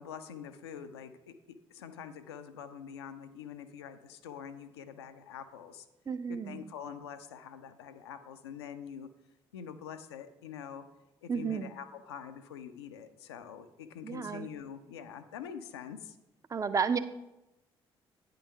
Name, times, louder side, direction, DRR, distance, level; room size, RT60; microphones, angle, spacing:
voice 1, 0.0-1.3 1.7-5.9 6.3-9.1 9.5-10.9 11.2-16.2, left 8 dB, 75° left, 9 dB, 0.5 m, -45 dB
voice 2, 6.1-6.7 11.3-11.7 14.0-14.5 16.5-17.0, right 6 dB, 25° right, 12 dB, 0.5 m, -32 dB
9.3 x 3.8 x 5.5 m, 0.97 s
figure-of-eight pair, 45°, 14 cm